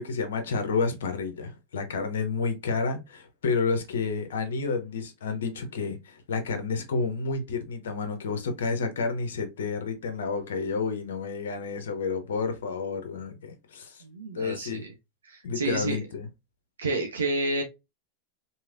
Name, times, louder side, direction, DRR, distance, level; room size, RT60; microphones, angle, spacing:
voice 1, 0.0-14.0 14.3-14.8 15.4-16.3, left 4 dB, 75° left, 0.7 m, -30 dB
voice 2, 14.0-14.9 15.2-16.0 16.8-17.6, right 2 dB, 80° right, 0.6 m, -30 dB
3.1 x 2.7 x 2.4 m
hypercardioid pair, 90°, 0 cm